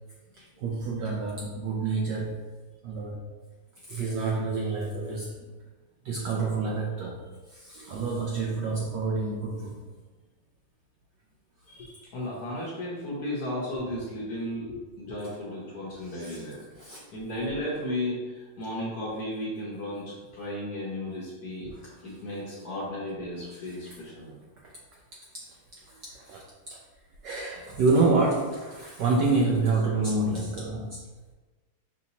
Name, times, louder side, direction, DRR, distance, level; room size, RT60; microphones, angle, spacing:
voice 1, 0.3-2.4 2.8-3.2 3.9-5.5 6.0-9.8 16.0-16.4 16.8-17.0 21.7-22.2 23.7-24.0 24.6-24.8 25.9-26.4 26.7-26.8 27.2-31.0, right 3 dB, 80° right, -2 dB, 1.0 m, -28 dB
voice 2, 11.7-21.7 22.0-24.3, left 1 dB, 65° left, -5 dB, 1.0 m, -34 dB
5.9 x 2.7 x 2.7 m, 1.3 s
omnidirectional pair, 2.4 m